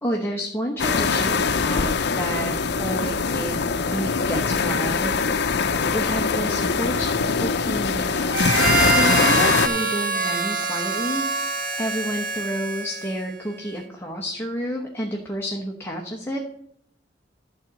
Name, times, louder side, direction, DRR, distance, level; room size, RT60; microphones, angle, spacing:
voice 1, 0.0-3.5 3.9-7.1 7.4-8.3 8.9-16.4, equal, 15° left, 0 dB, 1.0 m, -30 dB
sound 1, 0.8-9.7, left 5 dB, 65° left, 0.6 m, -22 dB
Harmonica, 8.3-13.3, right 4 dB, 50° right, 1.3 m, -25 dB
12.0 x 4.0 x 7.5 m, 0.71 s
head